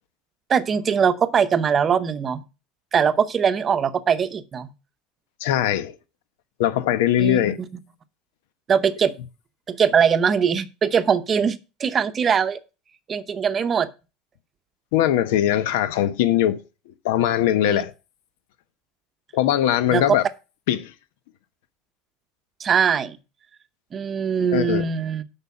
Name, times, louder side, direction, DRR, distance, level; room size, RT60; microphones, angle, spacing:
voice 1, 0.5-2.4 2.9-4.7 7.2-7.4 8.7-9.1 9.7-12.6 13.1-13.9 17.6-17.8 19.9-20.0 22.6-23.2 23.9-25.2, right 7 dB, 25° right, 0.7 m, -21 dB
voice 2, 5.4-6.0 6.6-7.6 14.9-16.6 17.0-17.9 19.3-20.2 20.7-20.9 24.5-24.8, left 11 dB, 85° left, 1.0 m, -20 dB
8.2 x 5.5 x 7.1 m
cardioid pair, 145°, 0 cm